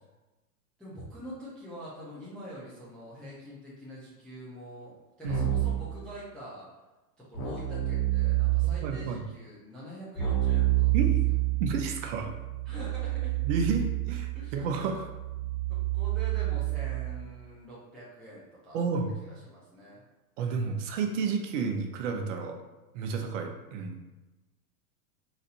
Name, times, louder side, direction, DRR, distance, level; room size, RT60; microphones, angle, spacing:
voice 1, 0.8-6.7 7.2-10.9 12.7-13.4 14.3-14.7 15.7-18.9 19.2-20.0, equal, ahead, -9 dB, 0.4 m, -45 dB
Keyboard (musical), 5.3-5.9 7.3-8.9 10.2-17.2, right 15 dB, 40° left, 1.2 m, -28 dB
voice 2, 8.6-9.2 10.9-11.2 11.6-12.3 13.4-15.1 18.7-19.1 20.4-22.6 22.9-24.0, right 5 dB, 50° right, 4 dB, 0.7 m, -31 dB
4.1 x 2.6 x 4.0 m, 1.1 s
hypercardioid pair, 135°, 48 cm